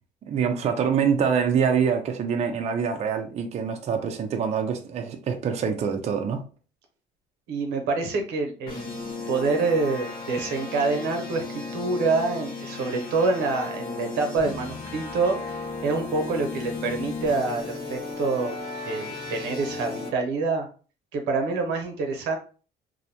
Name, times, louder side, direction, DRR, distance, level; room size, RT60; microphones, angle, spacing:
voice 1, 0.2-6.4, right 7 dB, 40° right, 0.4 m, -25 dB
voice 2, 7.5-18.6 18.9-20.7 21.1-22.4, right 3 dB, 90° right, 0.7 m, -26 dB
sound 1, 8.7-20.1, left 3 dB, 60° left, 1.1 m, -35 dB
2.6 x 2.1 x 2.7 m
cardioid pair, 110°, 17 cm